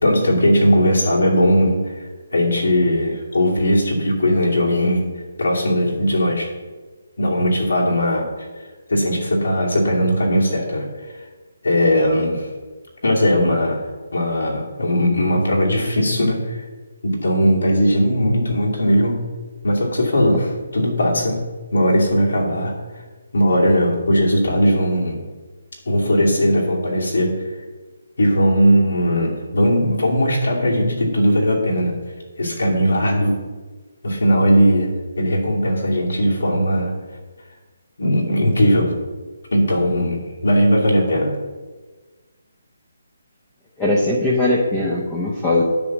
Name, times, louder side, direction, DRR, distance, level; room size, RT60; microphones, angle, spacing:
voice 1, 0.0-1.9 2.3-5.1 5.4-6.5 7.2-8.2 8.9-10.9 11.6-12.5 13.0-13.8 14.1-16.6 17.0-19.2 19.6-20.5 20.7-21.4 21.7-22.7 23.3-25.2 25.9-27.3 28.2-31.9 32.4-33.4 34.0-34.9 35.2-36.9 38.0-38.9 39.5-41.4, equal, 85° left, -3 dB, 2.5 m, -18 dB
voice 2, 43.8-45.6, left 2 dB, 10° left, -3 dB, 0.6 m, -19 dB
10.5 x 3.5 x 7.2 m, 1.3 s
hypercardioid pair, 175°, 0 cm